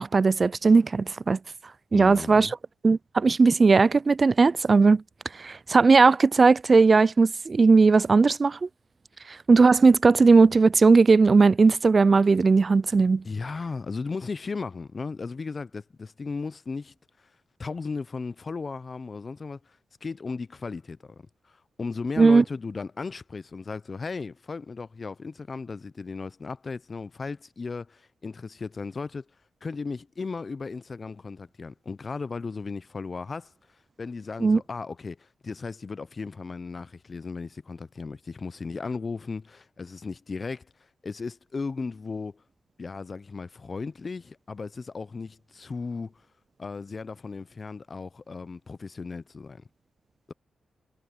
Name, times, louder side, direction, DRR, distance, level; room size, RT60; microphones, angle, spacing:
voice 1, 0.0-1.4 1.9-2.5 2.8-5.0 5.4-8.7 9.5-13.2 22.2-22.4 34.4-34.6, right 4 dB, 45° right, 0.3 m, -18 dB
voice 2, 1.9-2.5 13.2-16.9 17.6-19.6 20.0-21.2 21.5-29.2 29.6-33.5 34.0-40.7 41.0-42.4 42.8-46.1 46.6-49.6, left 4 dB, 45° left, 0.7 m, -36 dB
supercardioid pair, 50°, 0 cm